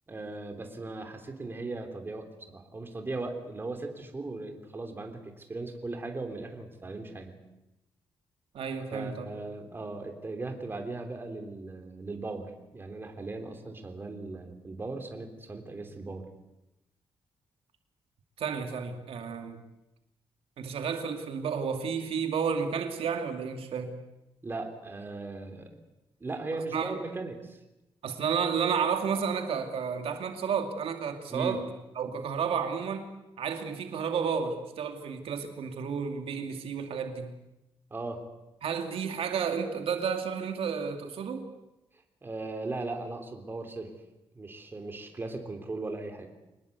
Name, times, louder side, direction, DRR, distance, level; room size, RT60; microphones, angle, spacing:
voice 1, 0.1-7.4 8.9-16.3 24.4-25.8 26.2-27.6 31.3-31.6 37.9-38.2 42.2-43.9 44.3-46.3, right 3 dB, 20° right, 5 dB, 3.4 m, -38 dB
voice 2, 8.5-9.3 18.4-19.6 20.6-23.9 26.7-26.9 28.0-31.6 32.0-33.1 33.4-37.3 38.6-41.5, right 6 dB, 80° right, 5 dB, 2.5 m, -31 dB
25.0 x 20.0 x 8.2 m, 0.94 s
wide cardioid pair, 150°, 10 cm